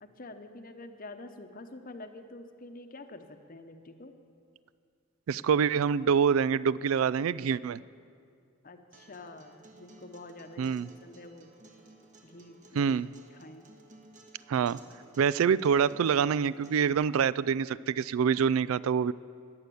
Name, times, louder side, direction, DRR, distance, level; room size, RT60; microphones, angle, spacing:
voice 1, 0.0-4.1 8.6-11.5 12.2-12.9 13.4-13.7, left 2 dB, 40° left, 7 dB, 0.9 m, -47 dB
voice 2, 5.3-7.8 10.6-10.9 12.7-13.1 14.5-14.8 15.2-19.1, right 7 dB, 80° right, 19 dB, 0.3 m, -26 dB
Acoustic guitar, 8.9-16.9, right 2 dB, 35° right, 1.4 m, -56 dB
20.5 x 8.0 x 7.0 m, 2.3 s
head